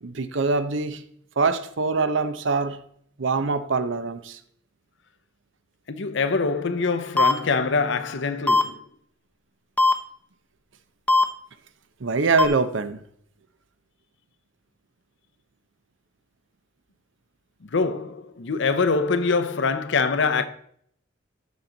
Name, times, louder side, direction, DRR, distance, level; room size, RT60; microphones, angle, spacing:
voice 1, 0.0-1.0 1.4-2.8 3.2-4.4 12.0-13.0, right 4 dB, 70° right, 0.7 m, -24 dB
voice 2, 5.9-8.8 17.6-20.5, left 4 dB, 65° left, 0.7 m, -24 dB
sound 1, 7.2-7.3 8.5-8.6 9.8-9.9 11.1-11.2 12.4-12.5, left 3 dB, 5° left, 0.7 m, -17 dB
14.0 x 6.0 x 3.9 m
head